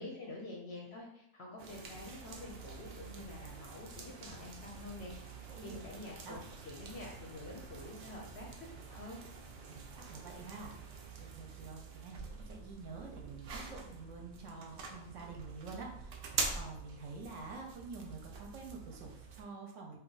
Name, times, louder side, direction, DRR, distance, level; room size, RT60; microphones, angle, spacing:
voice 1, 0.0-9.2, left 2 dB, 60° left, -1 dB, 0.7 m, -48 dB
sound 1, 1.6-19.4, right 4 dB, 90° right, 0.4 m, -46 dB
voice 2, 5.2-5.8 6.2-6.4 9.7-20.0, right 4 dB, 70° right, 1 dB, 0.8 m, -48 dB
2.9 x 2.2 x 3.8 m, 0.75 s
omnidirectional pair, 1.5 m